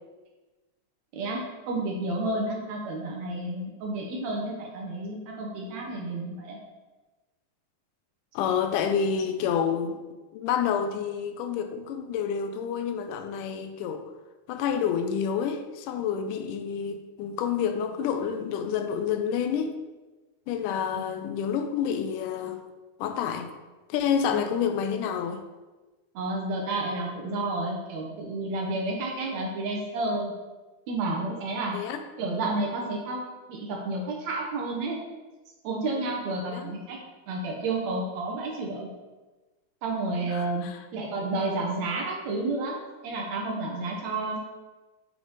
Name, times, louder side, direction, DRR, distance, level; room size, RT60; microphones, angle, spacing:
voice 1, 1.1-6.6 20.9-21.0 24.3-24.4 26.2-30.3 30.9-31.8 32.2-33.2 33.5-35.0 35.6-37.0 37.3-38.9 39.8-40.7 40.9-42.8 43.0-44.4, right 2 dB, 75° right, 0 dB, 1.9 m, -31 dB
voice 2, 8.4-10.0 10.3-14.0 14.5-19.8 20.5-22.6 23.0-23.5 23.9-25.4 31.7-32.0 36.5-36.7 40.2-40.8, left 7 dB, 85° left, 7 dB, 2.1 m, -28 dB
7.2 x 3.6 x 3.9 m, 1.2 s
omnidirectional pair, 3.6 m